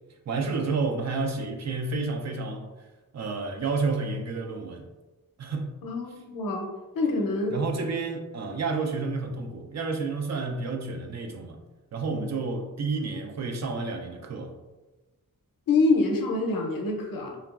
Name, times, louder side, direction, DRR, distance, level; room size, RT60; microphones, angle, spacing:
voice 1, 0.3-2.7 3.1-4.9 5.4-5.7 7.5-11.6 11.9-14.5, right 3 dB, 50° right, 3 dB, 0.4 m, -30 dB
voice 2, 5.8-7.6 15.7-17.4, left 3 dB, 75° left, 1 dB, 0.6 m, -26 dB
2.9 x 2.3 x 2.4 m, 1.1 s
wide cardioid pair, 85°, 34 cm